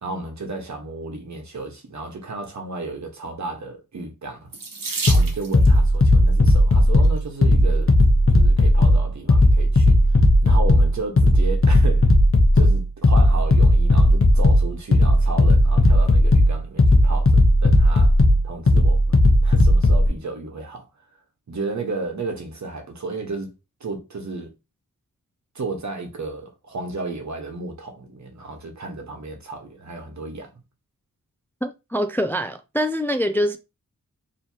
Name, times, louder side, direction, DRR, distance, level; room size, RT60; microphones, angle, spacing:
voice 1, 0.0-4.5 5.1-7.9 8.3-12.1 12.5-18.1 18.4-20.9 21.5-23.5 23.8-24.5 25.5-30.5, right 3 dB, 60° right, 1.2 m, -33 dB
Water tap faucet / Sink (filling or washing), 4.5-5.8 6.8-7.2 7.9-8.0 8.3-8.4, right 3 dB, 80° right, 1.1 m, -31 dB
sound 1, 5.1-20.1, left 1 dB, 40° left, 0.9 m, -16 dB
voice 2, 31.6-33.6, equal, 5° left, 0.3 m, -24 dB
4.7 x 3.0 x 2.8 m
wide cardioid pair, 125°, 33 cm